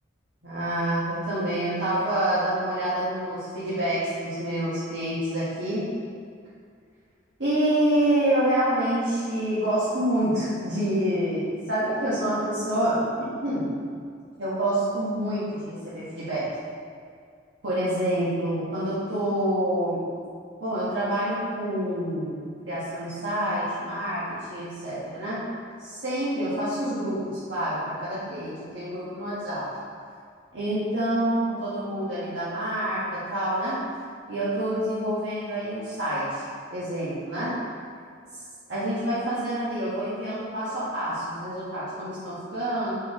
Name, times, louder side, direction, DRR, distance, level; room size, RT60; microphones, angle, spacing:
voice 1, 0.4-5.9 7.4-13.7 14.4-16.5 17.6-20.0 20.6-25.4 25.8-29.7 30.5-33.9 34.3-36.4 36.7-37.6 38.7-42.9, right 1 dB, 75° right, -11 dB, 1.5 m, -27 dB
7.2 x 4.6 x 3.6 m, 2.2 s
head